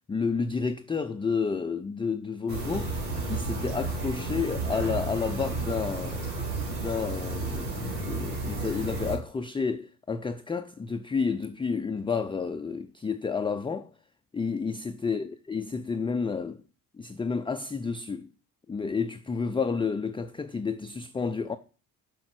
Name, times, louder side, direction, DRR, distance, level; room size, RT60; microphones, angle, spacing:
voice 1, 0.1-3.0 3.3-6.3 6.8-13.9 14.3-16.6 17.0-18.3 18.7-21.6, left 5 dB, 10° left, 0.4 m, -30 dB
sound 1, 2.5-9.2, right 2 dB, 85° right, 2.9 m, -32 dB
7.7 x 4.8 x 6.1 m
hypercardioid pair, 55°, 47 cm